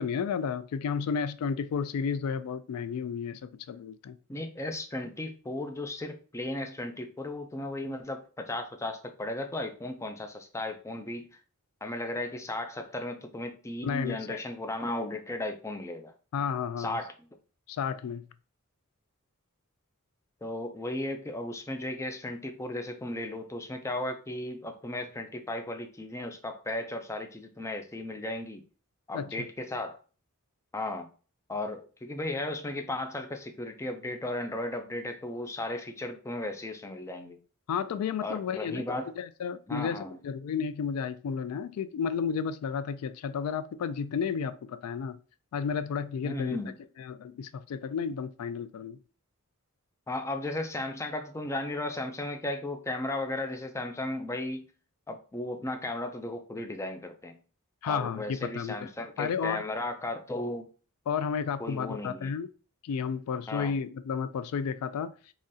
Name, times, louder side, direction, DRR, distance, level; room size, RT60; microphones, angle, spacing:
voice 1, 0.0-4.2 13.8-14.4 16.3-17.0 17.7-18.2 29.1-29.3 37.7-45.2 45.5-46.6 47.0-49.0 57.8-58.8 59.2-59.6 61.1-62.5 62.8-65.1, left 6 dB, 85° left, 0.3 m, -32 dB
voice 2, 4.3-11.4 11.8-16.1 16.8-17.3 20.4-28.6 29.1-30.0 30.7-31.1 31.5-37.4 38.2-39.1 39.7-40.2 46.2-46.7 50.1-54.6 55.1-57.4 57.8-60.7 61.6-62.3 63.5-63.7, left 1 dB, 15° left, 0.4 m, -35 dB
3.7 x 3.1 x 2.7 m
head